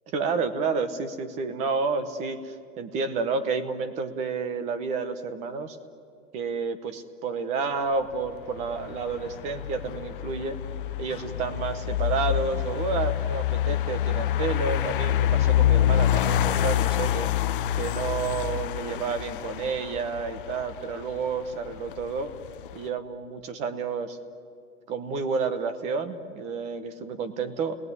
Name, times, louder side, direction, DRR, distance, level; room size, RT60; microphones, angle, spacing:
voice 1, 0.1-5.8 6.3-10.6 11.0-17.3 17.8-22.3 22.7-24.2 24.9-27.8, right 4 dB, 15° right, 11 dB, 0.8 m, -30 dB
sound 1, 8.1-22.9, left 11 dB, 40° left, 0.6 m, -27 dB
29.5 x 19.5 x 9.6 m, 2.4 s
supercardioid pair, 175°, 43 cm